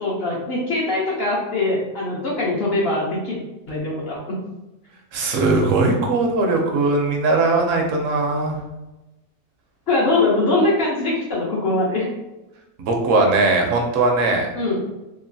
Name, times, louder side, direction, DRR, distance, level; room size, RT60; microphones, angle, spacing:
voice 1, 0.0-3.4 3.7-4.4 9.9-12.1 14.6-14.8, left 2 dB, 60° left, -5 dB, 0.7 m, -22 dB
voice 2, 5.1-8.6 12.8-14.5, right 3 dB, 70° right, 2 dB, 0.9 m, -19 dB
3.0 x 2.3 x 2.6 m, 1.0 s
omnidirectional pair, 1.5 m